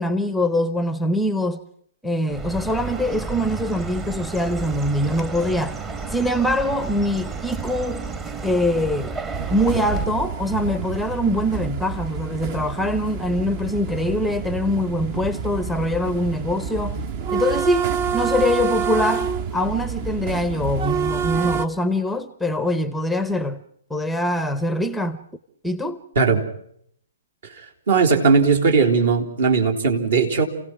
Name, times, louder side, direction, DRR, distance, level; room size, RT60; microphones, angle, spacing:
voice 1, 0.0-1.6 2.0-5.8 6.1-8.1 8.4-9.2 9.5-17.0 17.3-23.6 23.9-25.2 25.6-26.0, left 1 dB, ahead, 0.8 m, -23 dB
Chirp tweet, 2.3-10.1, right 4 dB, 20° right, 1.4 m, -31 dB
sound 1, 9.3-21.7, right 6 dB, 35° right, 1.1 m, -28 dB
voice 2, 27.6-30.5, right 5 dB, 60° right, 3.5 m, -18 dB
29.0 x 17.0 x 6.0 m
figure-of-eight pair, 125°, 0 cm